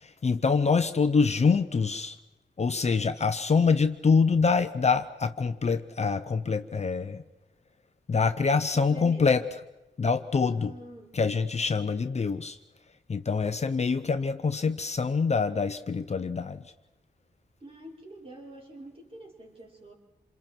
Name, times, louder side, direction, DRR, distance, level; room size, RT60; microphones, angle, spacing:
voice 1, 0.0-2.2 2.6-7.2 8.1-9.5 10.0-10.7 11.1-12.6 13.1-16.6, left 5 dB, 40° left, 9 dB, 0.8 m, -25 dB
voice 2, 8.6-9.3 10.5-11.2 17.6-19.9, right 1 dB, 30° right, -2 dB, 5.3 m, -46 dB
28.5 x 27.5 x 4.6 m, 0.97 s
wide cardioid pair, 175°, 18 cm